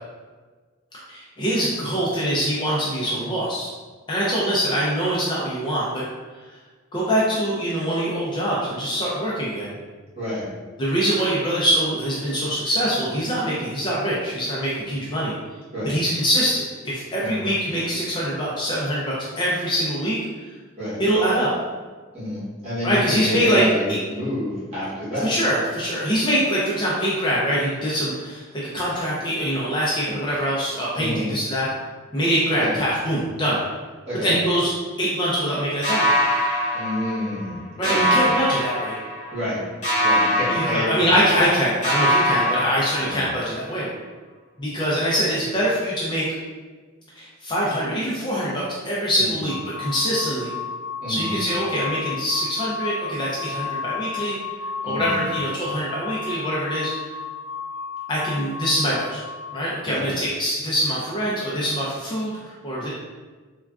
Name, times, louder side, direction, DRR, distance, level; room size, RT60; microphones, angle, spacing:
voice 1, 1.1-3.7 4.1-6.0 6.9-9.7 10.8-15.3 15.8-20.2 21.0-21.5 22.8-23.6 25.2-31.7 32.1-33.6 34.1-34.7 35.0-36.1 37.8-39.0 40.5-43.9 44.6-46.3 47.2-50.5 51.1-54.4 54.8-57.1 58.1-59.2 59.5-62.9, equal, 20° left, -6 dB, 0.4 m, -24 dB
voice 2, 10.1-10.5 15.7-16.0 17.2-17.5 20.8-21.0 22.1-25.3 30.9-31.3 32.5-32.7 34.1-34.3 36.7-38.1 39.3-39.6 40.0-41.1 43.0-43.3 49.2-49.4 51.0-51.4 54.8-55.2 59.8-60.1, left 1 dB, 30° right, -10 dB, 1.2 m, -28 dB
sound 1, 35.8-37.5 37.8-39.5 39.8-41.5 41.8-43.5, equal, 40° left, 1.1 m, -23 dB
sound 2, 49.5-59.6, left 5 dB, 5° right, 1.0 m, -33 dB
3.5 x 2.2 x 2.3 m, 1.4 s
head